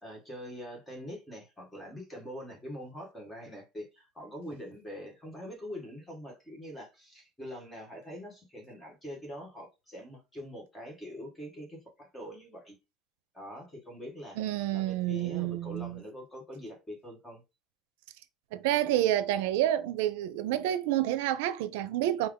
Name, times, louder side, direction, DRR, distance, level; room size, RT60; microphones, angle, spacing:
voice 1, 0.0-12.7 13.3-14.4 14.7-17.4, equal, 10° left, 1.6 m, -44 dB
voice 2, 14.4-16.0 18.5-22.3, right 13 dB, 85° right, 0.5 m, -29 dB
3.4 x 2.3 x 3.7 m
cardioid pair, 135°, 0 cm